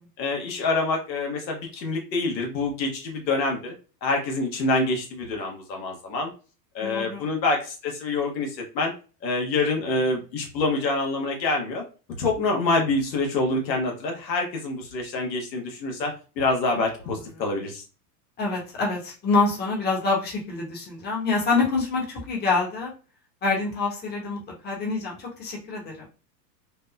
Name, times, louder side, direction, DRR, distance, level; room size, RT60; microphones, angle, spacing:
voice 1, 0.2-3.7 4.0-6.3 6.7-8.9 9.2-11.8 12.2-17.8, left 3 dB, 85° left, 2 dB, 1.2 m, -26 dB
voice 2, 6.8-7.3 18.4-22.9 23.4-26.0, left 3 dB, 20° left, -2 dB, 0.9 m, -26 dB
3.4 x 2.1 x 2.3 m, 0.34 s
hypercardioid pair, 120°, 50 cm